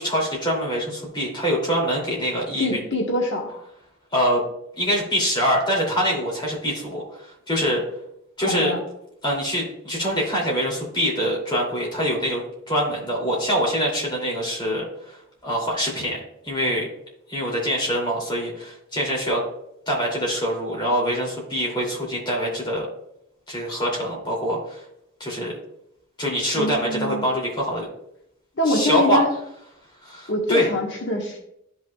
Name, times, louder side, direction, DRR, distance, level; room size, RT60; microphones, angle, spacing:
voice 1, 0.0-2.8 4.1-4.4 4.8-7.8 8.4-8.7 9.2-12.4 12.7-16.2 16.4-16.9 17.3-19.4 19.9-22.9 23.5-24.8 25.2-25.5 26.2-27.9 28.6-29.2 30.0-30.7, equal, 25° left, -3 dB, 2.8 m, -24 dB
voice 2, 2.6-3.6 8.4-8.8 26.5-27.2 28.6-29.3 30.3-31.4, left 1 dB, 60° left, -1 dB, 1.4 m, -24 dB
13.0 x 5.7 x 2.3 m, 0.76 s
head